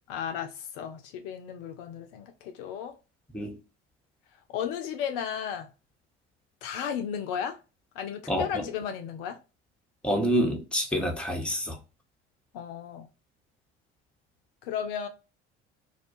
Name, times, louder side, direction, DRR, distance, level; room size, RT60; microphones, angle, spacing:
voice 1, 0.1-3.0 4.5-5.7 6.6-7.6 8.0-9.4 12.5-13.1 14.6-15.1, left 8 dB, 55° left, 0.5 m, -34 dB
voice 2, 8.3-8.7 10.0-11.8, equal, 5° left, 0.7 m, -27 dB
2.4 x 2.2 x 2.5 m
figure-of-eight pair, 60°, 34 cm